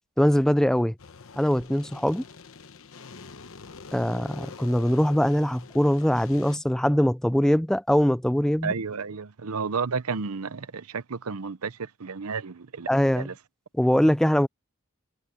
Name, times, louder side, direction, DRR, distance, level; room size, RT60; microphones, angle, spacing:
voice 1, 0.2-0.9 1.4-2.2 3.9-8.7 12.9-13.3 13.8-14.5, equal, 5° left, 0.4 m, -22 dB
sound 1, 1.0-6.6, left 4 dB, 70° left, 1.0 m, -45 dB
voice 2, 8.6-13.4, right 5 dB, 90° right, 0.8 m, -32 dB
head